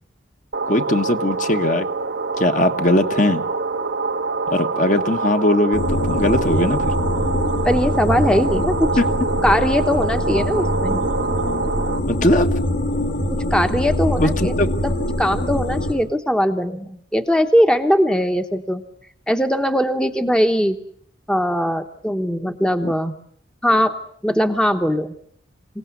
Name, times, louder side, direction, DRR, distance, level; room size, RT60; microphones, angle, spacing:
sound 1, 0.5-12.0, right 4 dB, 75° right, 1.5 m, -25 dB
voice 1, 0.7-1.9 2.4-3.4 4.5-6.9 9.0-9.2 12.1-12.6 14.2-14.7 22.8-22.9, left 1 dB, 40° left, 7 dB, 1.3 m, -20 dB
sound 2, 5.7-15.9, left 1 dB, 75° left, 5.3 m, -23 dB
voice 2, 7.6-8.9 9.4-11.0 13.3-14.5 14.8-14.9 15.2-18.8 19.3-20.8 21.3-23.1 23.6-24.0 24.2-25.1, equal, 5° left, 7 dB, 1.0 m, -20 dB
27.0 x 18.0 x 9.5 m, 0.64 s
head